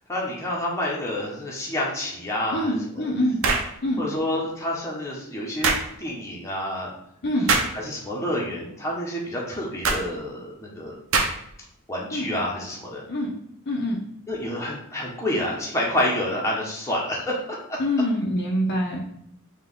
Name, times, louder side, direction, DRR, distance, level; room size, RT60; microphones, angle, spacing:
voice 1, 0.1-3.1 4.0-6.9 7.7-10.9 11.9-13.0 14.3-17.4, left 1 dB, 15° left, -4 dB, 1.1 m, -28 dB
voice 2, 2.5-3.4 3.8-4.0 7.2-7.5 12.1-12.3 13.1-13.3 13.7-14.0 17.8-19.0, left 1 dB, 50° left, -1 dB, 0.7 m, -25 dB
sound 1, 3.4-3.7 5.6-5.9 7.5-7.8 9.8-10.0 11.1-11.5, right 4 dB, 65° right, 0.7 m, -22 dB
4.5 x 3.1 x 3.6 m, 0.75 s
head